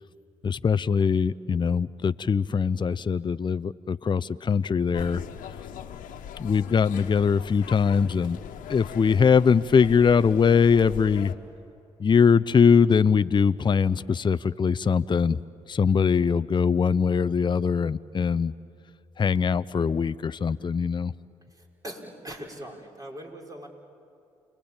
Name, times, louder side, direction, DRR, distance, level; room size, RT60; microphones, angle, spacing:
voice 1, 0.4-5.2 6.4-8.4 8.7-11.3 12.0-15.4 15.7-18.5 19.2-21.1, left 6 dB, 35° left, 14 dB, 0.6 m, -22 dB
sound 1, 4.9-11.3, left 9 dB, 75° left, 1.4 m, -40 dB
voice 2, 21.5-23.7, equal, 25° right, 0 dB, 5.3 m, -41 dB
29.5 x 21.0 x 8.9 m, 2.5 s
hypercardioid pair, 50°, 14 cm